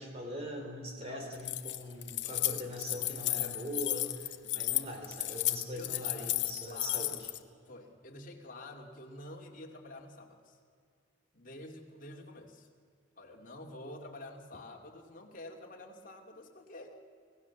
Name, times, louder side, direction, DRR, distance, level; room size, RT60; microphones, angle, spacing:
voice 1, 0.0-7.3, equal, 30° right, 3 dB, 3.7 m, -42 dB
voice 2, 0.9-1.3 4.4-4.8 5.7-6.3 6.7-7.1 7.7-10.6 11.3-12.7 13.2-17.0, left 1 dB, 40° left, 1 dB, 2.6 m, -48 dB
Keys jangling, 1.3-7.4, left 16 dB, 60° left, 1.0 m, -33 dB
26.5 x 17.5 x 7.3 m, 2.3 s
head